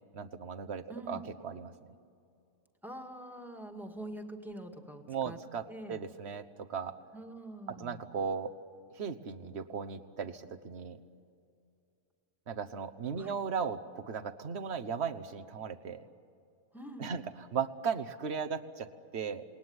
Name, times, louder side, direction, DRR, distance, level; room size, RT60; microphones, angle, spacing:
voice 1, 0.1-1.7 5.1-7.0 7.8-8.5 8.9-11.0 12.5-16.1 17.0-19.4, right 6 dB, 60° right, 9 dB, 1.4 m, -37 dB
voice 2, 0.9-1.2 2.8-5.4 5.7-6.0 7.1-8.0 13.2-13.4 16.7-17.1, right 1 dB, ahead, 4 dB, 2.0 m, -45 dB
28.5 x 20.5 x 9.7 m, 2.5 s
omnidirectional pair, 1.3 m